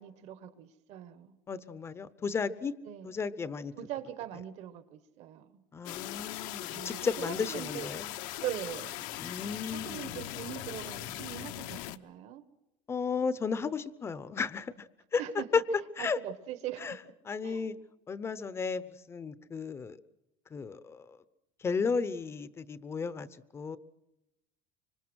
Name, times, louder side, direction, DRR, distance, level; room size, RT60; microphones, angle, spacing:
voice 1, 0.0-1.4 2.8-3.1 3.8-5.6 6.7-7.9 8.4-9.1 9.7-12.4 15.1-15.5 16.0-17.1 17.4-17.7, right 12 dB, 50° right, 12 dB, 1.4 m, -41 dB
voice 2, 1.5-2.7 3.0-3.7 5.7-8.1 9.2-10.3 12.9-15.2 15.5-15.6 16.0-16.2 16.8-16.9 17.3-17.8 18.1-20.0 20.5-21.2 21.6-23.3 23.5-23.8, left 5 dB, 15° left, 15 dB, 0.8 m, -34 dB
sound 1, 5.8-12.0, left 14 dB, 65° left, 0.9 m, -40 dB
25.5 x 25.5 x 6.3 m, 0.90 s
cardioid pair, 170°, 14 cm